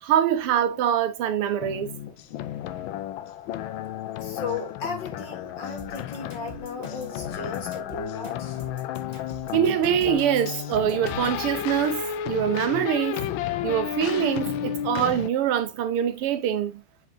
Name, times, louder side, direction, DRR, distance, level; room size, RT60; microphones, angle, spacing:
voice 1, 0.0-1.9 9.5-13.2 13.6-16.8, right 9 dB, 85° right, 1.9 m, -24 dB
sound 1, 1.6-15.3, left 10 dB, 75° left, 1.3 m, -32 dB
voice 2, 4.2-8.6, left 4 dB, 55° left, 2.5 m, -35 dB
sound 2, 5.8-11.4, left 1 dB, 20° left, 2.0 m, -43 dB
7.7 x 5.1 x 2.8 m
omnidirectional pair, 2.4 m